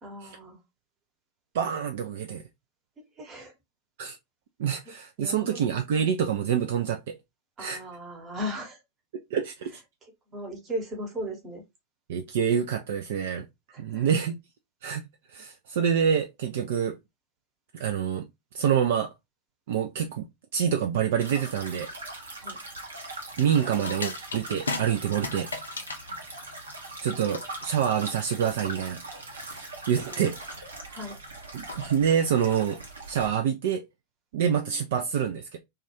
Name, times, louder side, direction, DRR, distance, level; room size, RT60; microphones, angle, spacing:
voice 1, 0.0-0.6 3.2-3.5 5.2-5.6 7.6-8.8 10.0-11.6 13.7-14.1 22.4-22.6 26.0-26.2 30.1-30.2 30.9-31.2 34.5-34.8, equal, 25° right, 0.9 m, -37 dB
voice 2, 1.5-2.4 4.0-4.2 4.6-7.2 7.6-7.8 9.3-9.8 12.1-13.5 13.8-14.4 14.8-15.1 15.3-17.0 17.7-18.3 18.5-19.1 19.7-21.9 23.4-25.5 27.0-29.0 29.5-29.6 29.9-30.3 31.5-32.8 33.1-33.8 34.3-35.6, right 8 dB, 55° right, 0.3 m, -26 dB
sound 1, 21.2-33.3, right 2 dB, 75° right, 0.7 m, -41 dB
sound 2, 23.3-32.3, left 3 dB, 75° left, 0.4 m, -39 dB
2.3 x 2.3 x 2.7 m
figure-of-eight pair, 90°, 0 cm